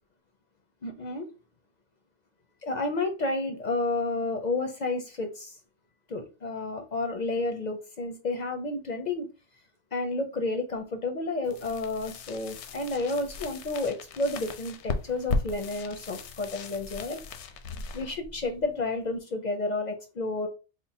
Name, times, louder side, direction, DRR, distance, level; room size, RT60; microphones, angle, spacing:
voice 1, 0.8-1.3 2.6-5.6 6.1-9.3 9.9-17.2 17.9-20.5, left 2 dB, 50° left, 5 dB, 0.6 m, -31 dB
sound 1, 11.4-19.2, left 4 dB, 80° left, 0.9 m, -37 dB
3.7 x 2.0 x 4.0 m, 0.30 s
omnidirectional pair, 1.2 m